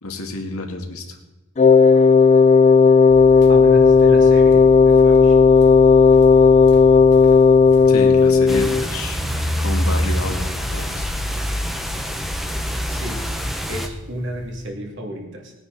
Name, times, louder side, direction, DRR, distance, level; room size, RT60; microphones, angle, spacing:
voice 1, 0.0-1.2 7.9-9.2 9.6-11.1, left 2 dB, 75° left, 3 dB, 2.0 m, -29 dB
Wind instrument woodwind instrument, 1.6-8.9, left 5 dB, 30° left, 0.4 m, -12 dB
sound 1, 3.1-14.7, left 4 dB, 50° left, 0.8 m, -35 dB
voice 2, 3.5-5.4 12.9-13.2 13.7-15.5, right 1 dB, 55° right, 1 dB, 2.5 m, -31 dB
sound 2, 8.5-13.9, equal, ahead, 0.8 m, -25 dB
20.0 x 9.6 x 4.0 m, 1.1 s
head